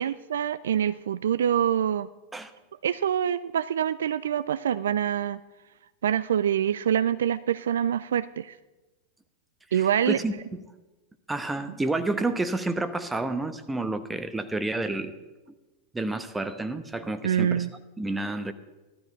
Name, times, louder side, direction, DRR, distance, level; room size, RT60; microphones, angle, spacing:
voice 1, 0.0-2.1 2.8-5.4 6.0-8.5 9.7-10.2 17.2-17.7, right 9 dB, 65° right, 15 dB, 0.3 m, -25 dB
voice 2, 9.7-10.6 11.3-15.1 15.9-17.6 18.0-18.5, right 2 dB, 10° right, 10 dB, 1.0 m, -30 dB
15.0 x 12.0 x 4.5 m, 1.1 s
figure-of-eight pair, 90°, 0 cm